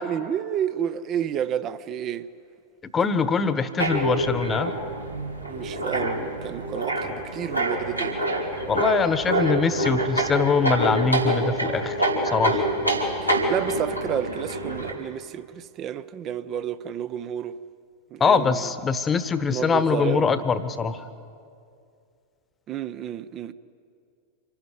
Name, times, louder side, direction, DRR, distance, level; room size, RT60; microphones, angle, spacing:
voice 1, 0.1-2.3 5.5-8.1 13.2-17.6 18.1-18.7 19.5-20.4 22.7-23.5, right 9 dB, 35° right, 0.7 m, -30 dB
voice 2, 2.9-4.7 8.7-12.7 18.2-21.1, left 5 dB, 20° left, 1.1 m, -23 dB
sound 1, 3.8-14.9, right 1 dB, 90° right, 2.9 m, -26 dB
26.0 x 11.5 x 9.2 m
figure-of-eight pair, 90°, 0 cm